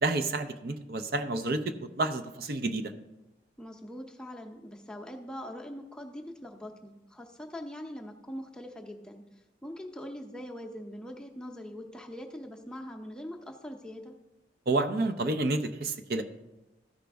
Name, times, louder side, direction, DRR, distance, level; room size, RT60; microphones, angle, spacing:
voice 1, 0.0-2.9 14.7-16.2, right 2 dB, 55° right, 8 dB, 0.5 m, -30 dB
voice 2, 3.6-9.2 9.6-14.1, equal, 5° left, 1 dB, 0.6 m, -42 dB
13.5 x 5.1 x 3.4 m, 0.99 s
head